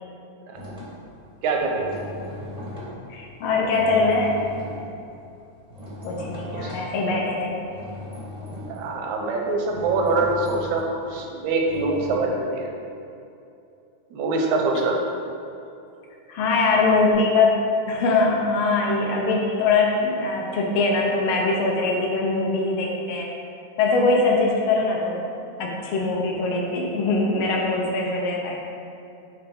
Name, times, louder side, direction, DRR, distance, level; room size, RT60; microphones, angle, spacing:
sound 1, 0.5-7.2 7.7-12.2, left 1 dB, 35° right, 0.5 m, -38 dB
voice 1, 1.4-1.9 6.5-6.8 8.7-12.7 14.1-15.0, right 3 dB, 80° right, 1 dB, 2.1 m, -24 dB
voice 2, 3.1-4.4 6.0-7.6 14.7-14.8 16.3-17.6 17.9-23.3 23.8-25.3 25.6-28.6, left 3 dB, 75° left, -1 dB, 1.2 m, -22 dB
8.8 x 3.6 x 4.7 m, 2.7 s
omnidirectional pair, 3.4 m